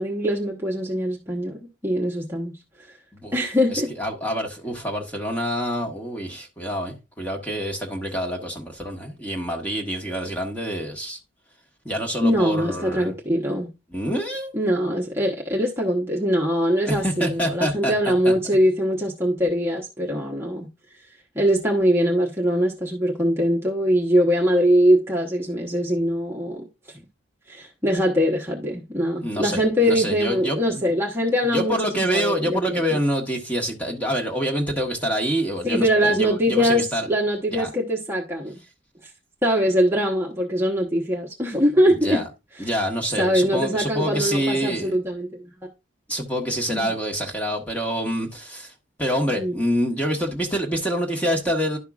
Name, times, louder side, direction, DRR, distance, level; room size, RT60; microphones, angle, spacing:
voice 1, 0.0-2.5 3.3-3.9 12.2-13.7 14.5-20.7 21.3-26.7 27.5-32.8 35.6-38.6 39.4-42.2 42.6-42.7 43.2-45.5 46.7-46.9 49.3-49.6, equal, 10° right, 1.0 m, -22 dB
voice 2, 3.7-11.2 11.8-13.1 13.9-14.6 16.8-18.3 29.2-30.9 31.4-37.1 37.5-37.7 41.9-42.3 42.6-44.9 46.1-48.7 49.0-51.8, equal, 10° left, 1.4 m, -26 dB
11.5 x 5.6 x 2.4 m
head